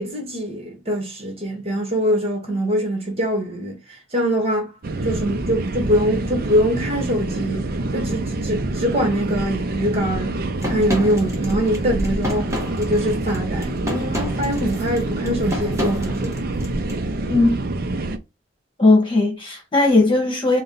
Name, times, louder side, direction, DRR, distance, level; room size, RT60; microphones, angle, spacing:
voice 1, 0.0-3.7 4.1-4.7 5.0-7.6 7.9-10.4 10.6-16.4, equal, 35° right, 1.2 m, -23 dB
sound 1, 4.8-18.2, right 2 dB, 55° right, 0.5 m, -26 dB
sound 2, 10.6-17.0, equal, 15° right, 1.1 m, -30 dB
voice 2, 17.3-17.6 18.8-20.6, left 2 dB, 25° left, 1.4 m, -17 dB
3.9 x 2.2 x 3.8 m
head